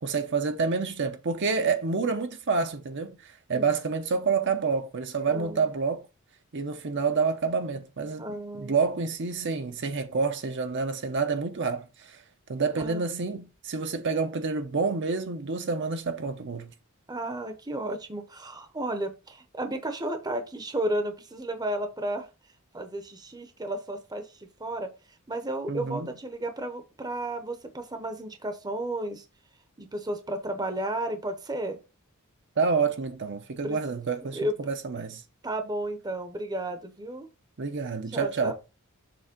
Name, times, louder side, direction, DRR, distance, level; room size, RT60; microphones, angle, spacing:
voice 1, 0.0-6.0 6.5-8.2 8.5-12.2 12.5-16.7 25.7-26.1 32.6-35.2 37.6-38.5, right 5 dB, 55° right, 0.8 m, -28 dB
voice 2, 5.3-5.7 8.2-8.8 12.8-13.1 17.1-22.3 22.7-24.9 25.3-29.2 29.8-31.8 33.6-33.8 34.3-34.5 35.4-37.3 38.1-38.5, right 1 dB, 20° right, 0.8 m, -33 dB
6.9 x 3.3 x 5.1 m
head